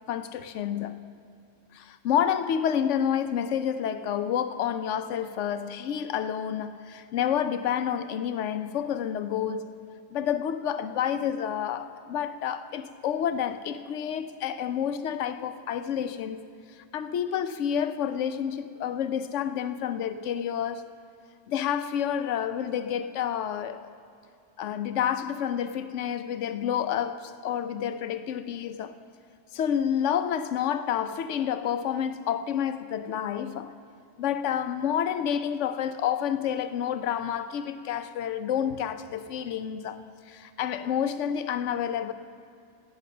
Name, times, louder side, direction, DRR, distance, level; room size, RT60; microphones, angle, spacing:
voice 1, 0.1-1.0 1.7-9.7 10.1-16.4 16.8-20.9 21.5-23.9 24.6-28.9 29.5-33.7 34.2-40.0 40.3-42.1, left 9 dB, 85° left, 1.0 m, -29 dB
14.5 x 8.6 x 6.6 m
omnidirectional pair, 1.2 m